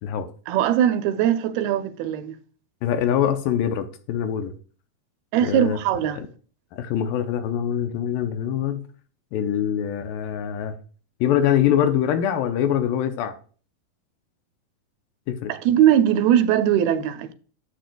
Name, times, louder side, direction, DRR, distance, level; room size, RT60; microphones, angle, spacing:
voice 1, 0.5-2.3 5.3-6.2 15.5-17.3, right 10 dB, 90° right, 2.6 m, -20 dB
voice 2, 2.8-4.5 5.4-5.8 6.1-6.2 6.7-8.8 9.3-10.8 11.2-13.3 15.3-15.5, left 9 dB, 75° left, 2.3 m, -23 dB
10.0 x 7.7 x 2.3 m
omnidirectional pair, 4.2 m